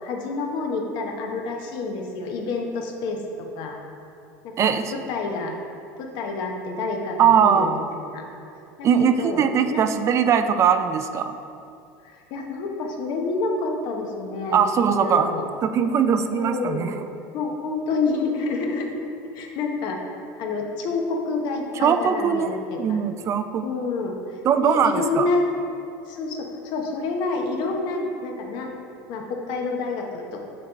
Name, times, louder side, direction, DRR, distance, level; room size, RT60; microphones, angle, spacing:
voice 1, 0.0-3.2 3.6-3.8 4.4-5.5 6.0-8.2 8.8-9.4 9.7-9.9 12.0-15.5 16.3-16.9 17.3-18.9 19.3-20.0 20.4-23.1 23.6-24.1 24.6-25.4 26.1-28.7 29.1-30.4, left 3 dB, 60° left, 2 dB, 0.9 m, -28 dB
voice 2, 4.6-4.9 7.2-7.7 8.8-11.3 14.5-15.3 15.6-16.9 21.8-23.7 24.4-25.3, right 7 dB, 35° right, 8 dB, 0.4 m, -20 dB
6.3 x 3.8 x 4.4 m, 2.7 s
supercardioid pair, 120°, 9 cm